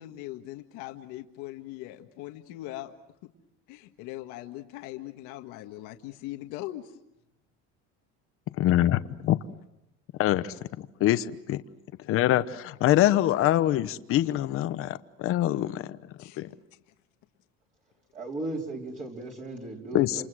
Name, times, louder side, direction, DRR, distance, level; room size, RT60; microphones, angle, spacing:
voice 1, 0.0-2.9 3.7-6.9 16.2-16.4, left 15 dB, 80° left, 6 dB, 1.7 m, -40 dB
voice 2, 8.6-9.4 10.2-11.6 12.1-15.8 16.4-16.5 19.9-20.2, left 13 dB, 45° left, 13 dB, 1.0 m, -24 dB
voice 3, 18.1-20.2, right 2 dB, 25° right, -1 dB, 4.1 m, -36 dB
28.5 x 28.0 x 6.3 m, 0.86 s
cardioid pair, 165°, 30 cm